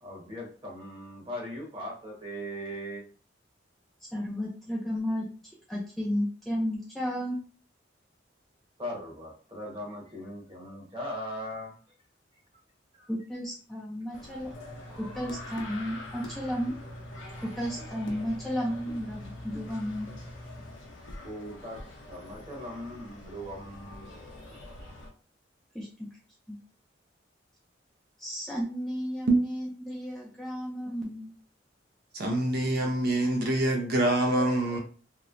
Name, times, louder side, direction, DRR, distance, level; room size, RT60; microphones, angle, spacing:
voice 1, 0.0-3.0 8.8-11.7 12.9-13.1 21.2-24.2 24.5-24.6, equal, 25° right, -3 dB, 1.1 m, -39 dB
voice 2, 4.1-5.3 5.7-7.4 13.1-14.5 15.0-16.7 17.4-20.1 25.7-26.1 26.5-26.6 28.2-31.3, equal, ahead, -5 dB, 0.4 m, -33 dB
sound 1, 14.1-25.1, left 2 dB, 90° left, 0.6 m, -46 dB
sound 2, 14.5-20.9, equal, 65° left, 0.9 m, -46 dB
voice 3, 32.1-34.8, right 1 dB, 55° right, 2 dB, 0.5 m, -25 dB
2.9 x 2.1 x 2.5 m, 0.40 s
head